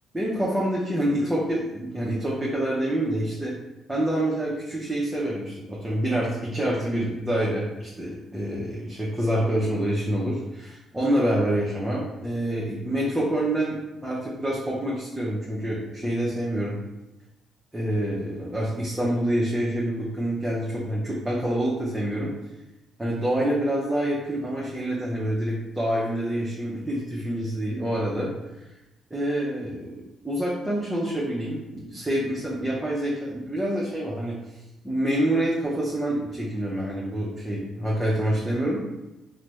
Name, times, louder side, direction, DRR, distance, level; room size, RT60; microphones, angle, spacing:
voice 1, 0.1-3.5 3.9-13.8 14.0-16.7 17.7-22.3 23.0-28.6 29.1-34.4 34.8-38.8, right 1 dB, 10° right, -6 dB, 0.6 m, -27 dB
3.2 x 2.0 x 3.1 m, 1.0 s
cardioid pair, 90°, 0 cm